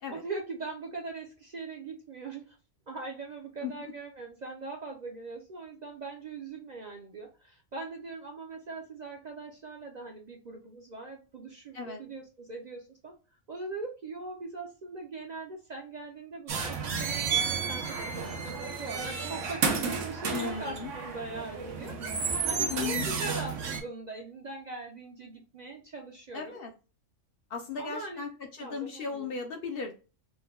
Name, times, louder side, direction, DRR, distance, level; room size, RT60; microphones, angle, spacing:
voice 1, 0.1-2.6 2.9-13.2 13.5-26.6 27.8-28.2 28.6-29.3, right 3 dB, 50° right, 1 dB, 0.5 m, -41 dB
sound 1, 16.5-23.8, right 5 dB, 80° right, 1.1 m, -32 dB
voice 2, 20.3-20.9 22.7-23.1 26.3-26.7 27.5-29.9, left 5 dB, 60° left, 4 dB, 0.7 m, -36 dB
4.5 x 2.2 x 2.2 m, 0.33 s
omnidirectional pair, 1.3 m